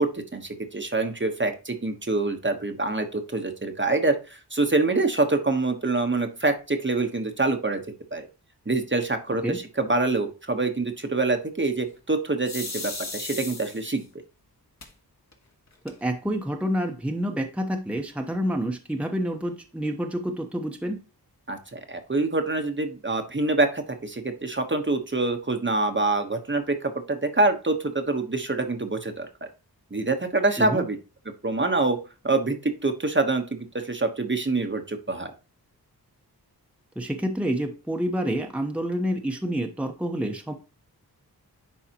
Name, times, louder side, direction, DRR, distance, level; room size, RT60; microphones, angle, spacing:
voice 1, 0.0-7.8 8.1-8.3 8.7-14.0 21.5-29.3 29.9-31.0 31.4-32.0 32.2-35.3, right 2 dB, 30° right, 1.0 m, -25 dB
sound 1, 12.4-14.0 14.8-14.9 15.3-15.4 15.7-16.3, left 3 dB, 45° left, 1.4 m, -35 dB
voice 2, 15.8-21.0 30.6-30.8 37.0-40.5, equal, 5° right, 0.9 m, -28 dB
10.0 x 4.1 x 2.9 m
wide cardioid pair, 80°, 39 cm